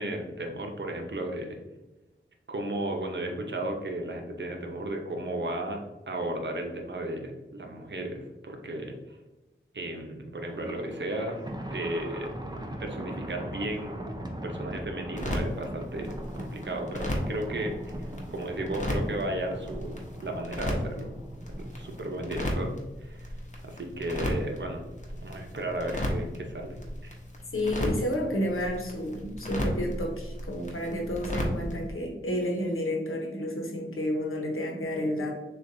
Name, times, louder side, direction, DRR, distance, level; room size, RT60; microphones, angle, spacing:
voice 1, 0.0-1.6 2.5-5.8 6.1-9.2 9.7-11.4 11.7-12.3 12.8-13.9 14.3-21.1 21.6-23.3 23.6-24.8 25.2-26.8 27.0-27.1, right 1 dB, 60° right, 2 dB, 0.8 m, -34 dB
Thunder, 10.5-22.3, right 1 dB, 20° right, 0.6 m, -40 dB
sound 1, 15.2-31.9, equal, 35° left, 1.0 m, -35 dB
voice 2, 27.5-35.3, left 1 dB, 80° left, 0 dB, 1.0 m, -30 dB
6.3 x 2.5 x 2.7 m, 1.0 s
wide cardioid pair, 45°, 21 cm